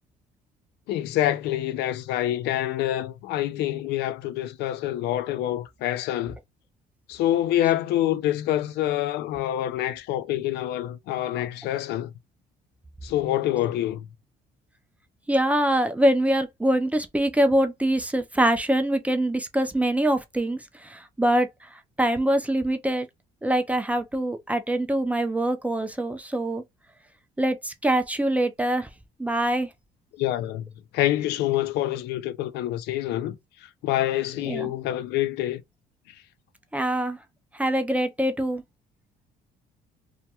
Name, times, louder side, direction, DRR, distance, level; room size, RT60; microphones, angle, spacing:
voice 1, 0.9-6.4 7.1-12.1 13.0-14.1 30.1-33.4 33.6-35.6, left 13 dB, 80° left, 0.4 m, -26 dB
voice 2, 15.3-23.1 23.4-26.6 27.4-28.9 29.2-29.7 34.4-34.7 36.7-37.2 37.5-38.6, right 1 dB, 10° right, 0.4 m, -24 dB
2.3 x 2.2 x 2.8 m
cardioid pair, 110°, 17 cm